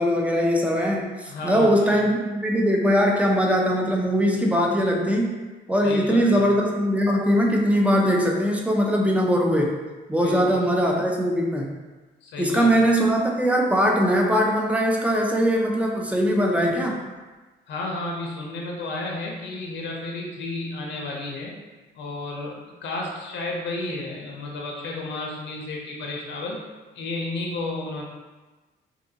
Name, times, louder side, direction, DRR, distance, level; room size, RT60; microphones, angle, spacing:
voice 1, 0.0-5.4 5.7-9.8 10.1-11.7 12.4-17.0, equal, 5° right, -1 dB, 0.4 m, -21 dB
voice 2, 1.3-2.0 5.8-6.5 10.1-10.6 12.2-12.9 17.7-21.5 21.9-26.6 26.9-28.0, left 2 dB, 65° left, -1 dB, 0.5 m, -32 dB
2.6 x 2.4 x 2.7 m, 1.3 s
cardioid pair, 90°, 20 cm